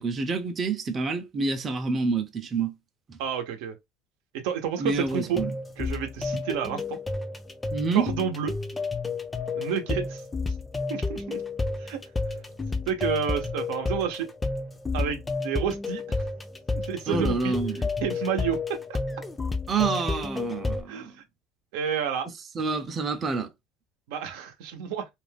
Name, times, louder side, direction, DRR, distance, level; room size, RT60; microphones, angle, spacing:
voice 1, 0.0-2.7 3.1-3.2 4.8-5.5 6.3-6.4 7.7-8.1 17.1-17.9 19.7-21.1 22.5-23.5, right 4 dB, 30° right, 0.6 m, -28 dB
voice 2, 3.2-3.8 4.3-5.4 5.8-7.0 7.9-8.5 9.6-10.2 10.9-11.4 11.8-12.0 12.9-14.3 14.9-16.2 16.7-17.6 18.0-18.8 20.9-21.1 21.7-22.3 24.1-25.1, right 8 dB, 80° right, 0.8 m, -30 dB
sound 1, 5.1-20.8, left 3 dB, 15° left, 0.5 m, -31 dB
2.5 x 2.2 x 3.4 m
supercardioid pair, 110°, 0 cm